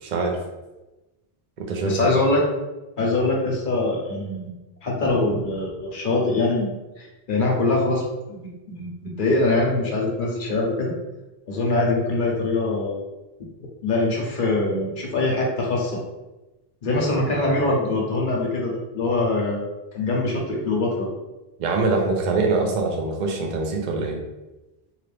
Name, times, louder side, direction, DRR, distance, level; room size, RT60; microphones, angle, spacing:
voice 1, 0.0-0.4 1.6-2.1 21.6-24.2, right 3 dB, 55° right, 1 dB, 0.6 m, -24 dB
voice 2, 1.8-2.4 3.0-4.5 4.8-6.7 7.0-10.9 11.5-13.0 13.8-16.0 16.8-21.1, left 2 dB, 55° left, -2 dB, 0.8 m, -23 dB
2.9 x 2.5 x 3.3 m, 1.1 s
omnidirectional pair, 1.0 m